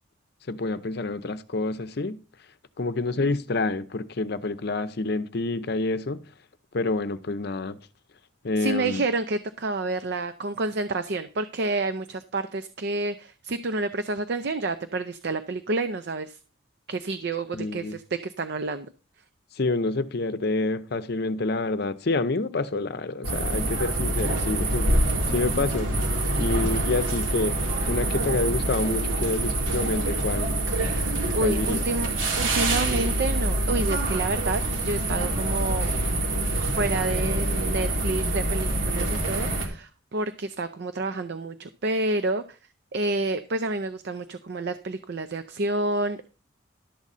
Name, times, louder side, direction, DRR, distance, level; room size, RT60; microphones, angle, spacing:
voice 1, 0.5-2.2 2.8-6.2 6.7-7.8 8.4-9.0 17.5-18.0 19.6-26.1 26.4-27.6 27.9-30.5 31.4-31.8, left 3 dB, 55° left, 0.6 m, -28 dB
voice 2, 8.6-16.4 16.9-18.9 31.3-32.1 32.4-35.9 36.5-42.6 42.9-46.3, right 2 dB, 55° right, 0.5 m, -29 dB
sound 1, 23.2-39.7, right 1 dB, 90° right, 2.6 m, -26 dB
12.0 x 4.1 x 7.2 m
head